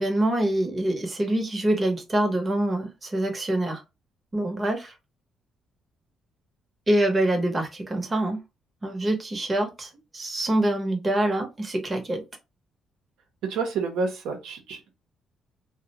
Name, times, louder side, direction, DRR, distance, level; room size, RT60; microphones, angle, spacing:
voice 1, 0.0-3.8 4.3-4.9 6.9-8.4 8.8-12.2, right 1 dB, 25° right, 3 dB, 0.8 m, -25 dB
voice 2, 13.4-14.9, right 4 dB, 85° right, 3 dB, 0.6 m, -29 dB
2.5 x 2.1 x 2.8 m, 0.25 s
cardioid pair, 90°, 0 cm